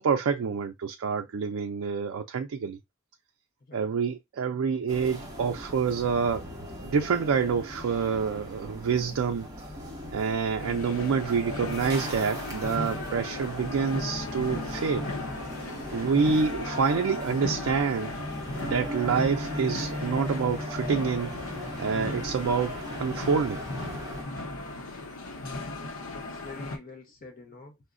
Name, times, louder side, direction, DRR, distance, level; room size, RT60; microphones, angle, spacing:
voice 1, 0.0-2.8 3.7-6.4 6.8-9.5 10.1-15.1 15.9-18.1 18.6-21.3 21.8-23.6, right 5 dB, 75° right, 0.4 m, -27 dB
voice 2, 3.6-3.9 25.4-27.8, left 3 dB, 40° left, 0.6 m, -47 dB
sound 1, 4.9-24.2, equal, 20° right, 1.1 m, -38 dB
sound 2, 10.6-26.8, left 2 dB, 80° left, 0.7 m, -37 dB
4.7 x 2.1 x 2.4 m
head